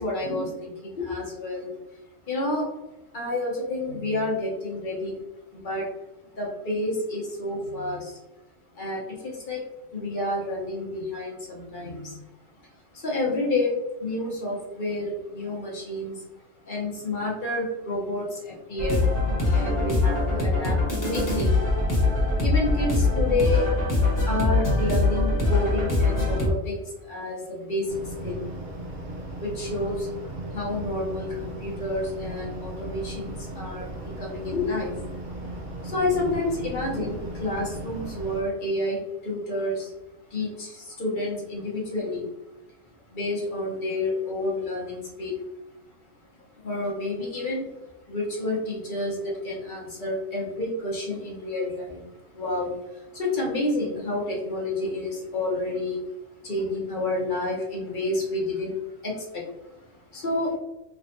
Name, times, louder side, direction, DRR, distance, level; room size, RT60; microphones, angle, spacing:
voice 1, 0.0-2.0 2.2-2.7 3.1-5.2 5.5-5.9 6.2-8.2 8.7-9.6 9.9-12.2 12.6-16.2 16.6-19.2 19.5-21.5 22.1-23.7 24.2-28.4 29.4-30.1 30.5-35.6 35.8-39.9 40.3-42.3 43.1-45.4 46.6-47.7 48.0-56.0 56.4-60.6, left 2 dB, 45° left, -3 dB, 1.0 m, -30 dB
sound 1, 18.8-26.5, left 2 dB, 15° left, 1.0 m, -23 dB
sound 2, 27.9-38.4, right 1 dB, 80° right, 1.2 m, -37 dB
3.4 x 3.1 x 2.6 m, 1.0 s
omnidirectional pair, 1.3 m